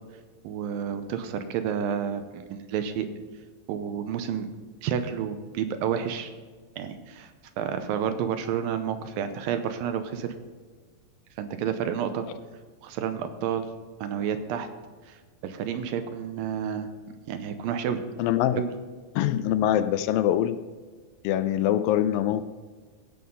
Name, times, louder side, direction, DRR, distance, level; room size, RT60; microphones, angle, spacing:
voice 1, 0.4-3.1 3.7-4.5 4.8-6.3 6.8-7.3 7.6-10.3 11.4-12.3 12.8-13.7 14.0-14.7 15.1-15.2 15.4-16.9 17.3-18.0 18.6-18.7, right 8 dB, 80° right, 8 dB, 2.4 m, -30 dB
voice 2, 18.2-18.6 19.1-20.6 21.2-22.4, left 11 dB, 80° left, 12 dB, 2.2 m, -24 dB
16.5 x 5.6 x 5.4 m, 1.5 s
omnidirectional pair, 4.2 m